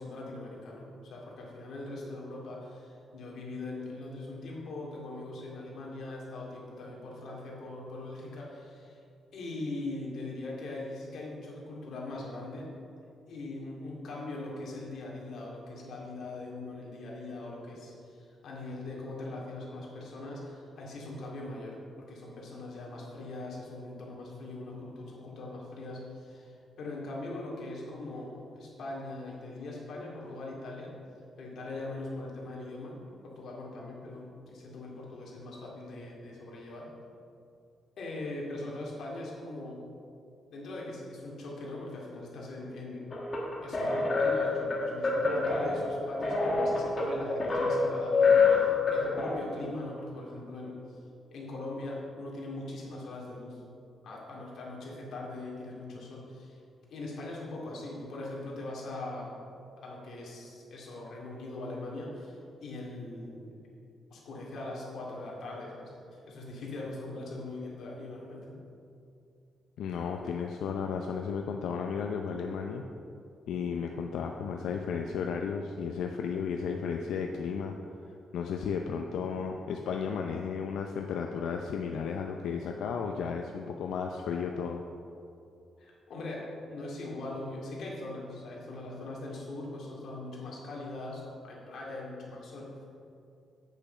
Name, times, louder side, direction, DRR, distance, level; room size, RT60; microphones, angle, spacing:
voice 1, 0.0-9.0 9.3-12.7 13.3-30.9 31.4-36.9 38.0-39.8 40.5-43.1 43.6-50.8 51.3-53.6 54.0-56.6 56.9-59.3 59.8-63.5 64.1-68.6 85.8-92.8, left 2 dB, 55° left, -3 dB, 2.2 m, -41 dB
sound 1, 43.1-49.3, left 4 dB, 25° left, 1.5 m, -27 dB
voice 2, 69.8-72.8 73.5-77.8 78.3-84.8, left 6 dB, 85° left, 3 dB, 0.5 m, -34 dB
8.4 x 6.8 x 5.6 m, 2.5 s
cardioid pair, 170°, 0 cm